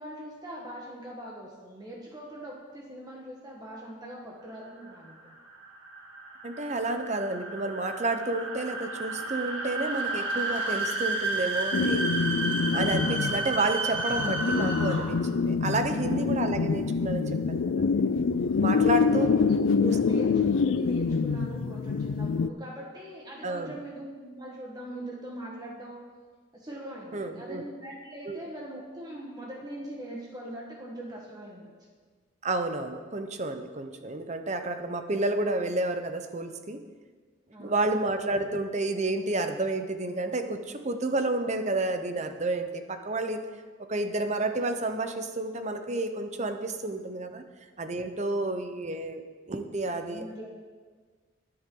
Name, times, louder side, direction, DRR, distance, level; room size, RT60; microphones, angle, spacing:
voice 1, 0.0-5.4 18.6-26.1 26.5-31.7 37.5-37.8 46.8-47.0 47.3-47.5 48.3-48.4 50.0-50.5, right 1 dB, 20° right, -2 dB, 1.4 m, -42 dB
sound 1, 4.6-15.3, right 2 dB, 70° right, 2.1 m, -32 dB
voice 2, 6.4-12.1 12.7-17.9 18.6-19.3 19.8-20.0 23.4-23.7 27.1-27.6 28.3-28.4 32.4-36.9 37.6-43.4 43.9-47.4 47.8-49.2 49.5-50.2, right 2 dB, 35° right, 7 dB, 0.8 m, -30 dB
sound 2, 11.7-22.5, left 5 dB, 70° left, 0.4 m, -26 dB
23.0 x 7.9 x 3.9 m, 1.5 s
head